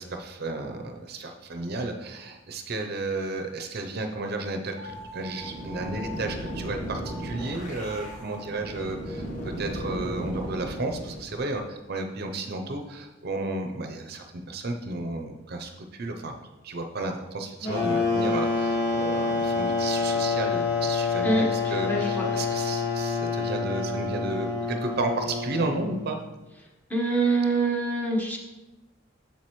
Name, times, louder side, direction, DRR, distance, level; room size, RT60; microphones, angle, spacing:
voice 1, 0.0-16.3 16.6-26.2, right 2 dB, 55° right, 5 dB, 0.7 m, -33 dB
sound 1, 4.7-6.6 7.0-7.4 7.8-8.6, left 1 dB, 80° left, 1.9 m, -44 dB
sound 2, 4.9-11.6, right 1 dB, 40° left, 1.4 m, -36 dB
sound 3, 17.6-26.1, left 4 dB, 60° left, 2.0 m, -27 dB
voice 2, 21.2-22.3 26.9-28.4, right 3 dB, 10° left, -1 dB, 1.2 m, -25 dB
7.4 x 7.3 x 3.1 m, 1.0 s
head